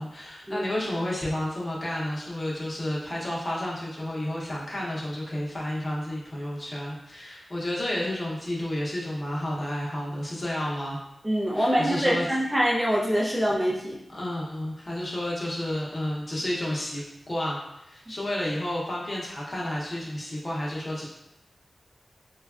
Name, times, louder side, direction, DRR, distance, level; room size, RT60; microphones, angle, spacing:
voice 1, 0.0-11.0 11.5-12.3 14.1-21.1, left 1 dB, 35° left, -4 dB, 0.7 m, -31 dB
voice 2, 11.2-14.0, equal, 20° right, -4 dB, 0.5 m, -24 dB
3.3 x 2.2 x 2.3 m, 0.88 s
wide cardioid pair, 95°, 0 cm